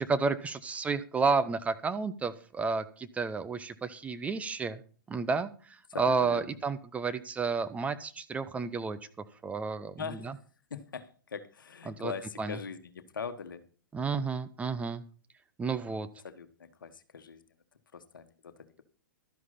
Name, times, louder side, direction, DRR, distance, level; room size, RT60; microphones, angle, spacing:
voice 1, 0.0-4.8 5.1-9.0 9.4-9.9 10.2-10.3 11.9-12.1 12.4-12.6 13.9-15.0 15.6-16.1, right 4 dB, 10° right, 10 dB, 0.7 m, -31 dB
voice 2, 5.9-6.6 10.0-10.3 10.7-13.6 16.2-17.4 17.9-18.8, left 6 dB, 70° left, 11 dB, 1.4 m, -41 dB
12.5 x 11.0 x 4.2 m, 0.40 s
figure-of-eight pair, 110°, 11 cm